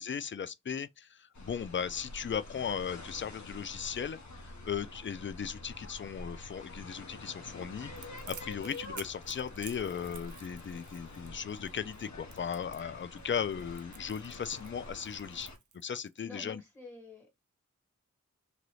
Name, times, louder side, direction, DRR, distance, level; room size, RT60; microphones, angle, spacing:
voice 1, 0.0-4.2 4.5-7.9 8.3-15.5 15.7-16.6, left 7 dB, 40° left, 0.4 m, -37 dB
sound 1, 1.3-15.6, left 2 dB, 70° left, 0.9 m, -47 dB
Crackle, 8.0-16.2, right 7 dB, 75° right, 0.5 m, -51 dB
voice 2, 16.2-17.4, left 2 dB, ahead, 2.0 m, -49 dB
2.9 x 2.7 x 3.1 m
wide cardioid pair, 55°, 30 cm